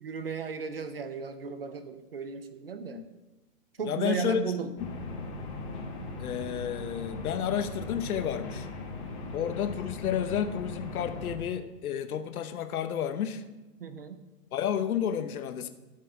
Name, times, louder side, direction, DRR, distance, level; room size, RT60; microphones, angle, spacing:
voice 1, 0.0-3.0 3.8-4.7 13.8-14.2, right 6 dB, 40° right, 10 dB, 0.6 m, -35 dB
voice 2, 3.8-4.4 6.2-8.7 9.3-13.4 14.5-15.7, left 9 dB, 65° left, 9 dB, 0.9 m, -31 dB
sound 1, 4.8-11.4, left 3 dB, 20° left, 1.3 m, -39 dB
12.0 x 6.7 x 4.8 m, 1.1 s
hypercardioid pair, 170°, 46 cm